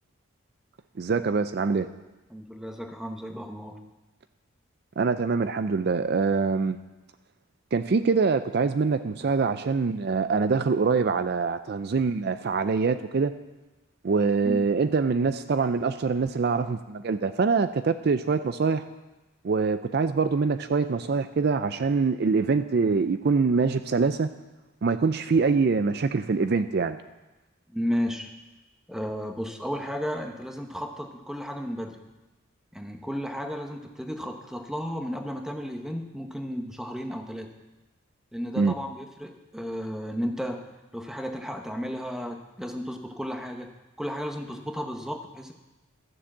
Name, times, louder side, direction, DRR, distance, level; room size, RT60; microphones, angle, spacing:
voice 1, 1.0-1.9 5.0-6.8 7.7-13.3 14.0-18.8 19.4-24.3 24.8-27.0 38.6-38.7, right 4 dB, 50° right, 11 dB, 0.4 m, -24 dB
voice 2, 2.3-3.8 14.4-14.6 27.7-28.3 28.9-32.0 32.7-37.5 38.3-40.7 40.9-43.7 44.0-45.5, equal, 5° right, 4 dB, 0.9 m, -33 dB
13.0 x 7.2 x 7.3 m, 1.1 s
head